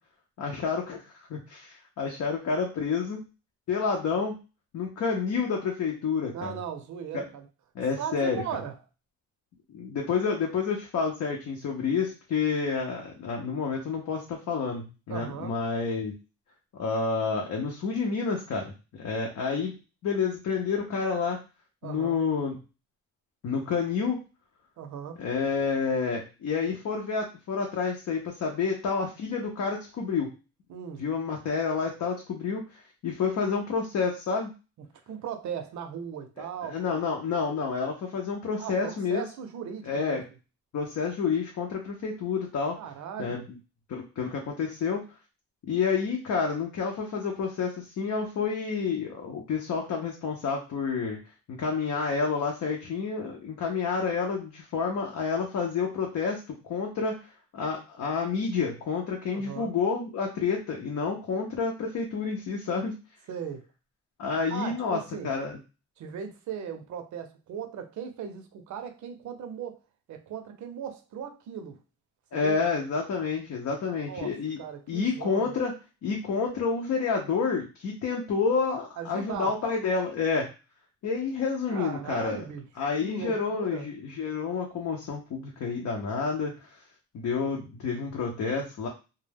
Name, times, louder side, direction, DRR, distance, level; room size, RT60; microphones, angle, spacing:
voice 1, 0.4-3.2 3.7-4.4 4.7-6.5 7.1-7.2 7.7-8.4 9.7-16.1 16.7-21.4 21.8-22.6 23.4-24.2 25.2-30.3 31.0-34.5 36.4-39.2 39.8-40.2 40.7-42.8 43.2-43.4 43.9-45.0 45.7-51.2 51.5-57.2 57.5-63.0 64.2-65.6 72.3-74.6 74.9-75.7 76.0-80.5 81.0-82.4 82.8-86.8 87.1-88.9, left 5 dB, 70° left, 0.7 m, -29 dB
voice 2, 6.3-7.5 8.0-8.7 15.1-15.6 21.8-22.2 24.8-25.2 30.7-31.0 35.1-36.8 38.6-40.2 42.8-43.5 59.3-59.7 63.3-63.7 64.5-65.3 66.0-69.8 70.1-71.8 72.3-72.7 74.1-75.5 79.0-79.5 81.7-82.6 83.0-83.9, right 8 dB, 80° right, 0.6 m, -38 dB
2.3 x 2.1 x 3.3 m
cardioid pair, 105°, 29 cm